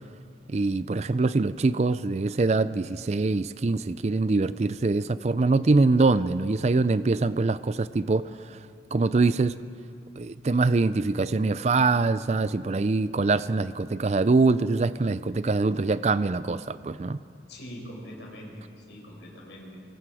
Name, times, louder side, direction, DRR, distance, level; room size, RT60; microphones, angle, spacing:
voice 1, 0.5-8.3 8.9-9.5 10.2-17.2, right 3 dB, 40° right, 14 dB, 0.4 m, -24 dB
voice 2, 17.5-19.8, equal, 80° left, -2 dB, 5.8 m, -43 dB
24.0 x 23.0 x 5.0 m, 2.3 s
head